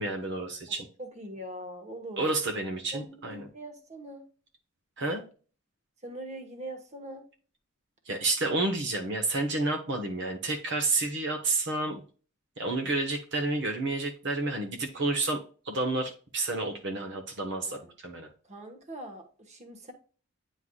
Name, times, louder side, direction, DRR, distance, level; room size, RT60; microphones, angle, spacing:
voice 1, 0.0-0.9 2.2-3.4 5.0-5.2 8.1-12.0 12.6-15.4 15.6-18.3, right 2 dB, 60° right, 3 dB, 1.1 m, -30 dB
voice 2, 1.0-2.3 2.9-4.3 6.0-7.3 17.5-17.9 18.4-19.9, right 1 dB, 35° right, 4 dB, 1.3 m, -42 dB
9.7 x 4.6 x 2.3 m, 0.38 s
head